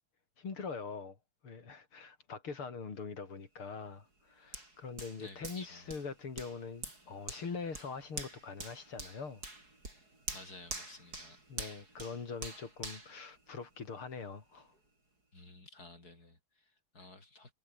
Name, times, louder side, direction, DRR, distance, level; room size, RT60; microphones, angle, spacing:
voice 1, 0.4-1.2 1.4-9.4 11.5-14.7 17.0-17.1, left 5 dB, 90° left, 4.4 m, -43 dB
Hands, 4.5-14.1 14.5-14.7, right 2 dB, 45° right, 7.3 m, -46 dB
voice 2, 5.2-5.9 10.3-11.4 15.3-17.5, left 2 dB, 45° left, 7.0 m, -53 dB
omnidirectional pair, 2.3 m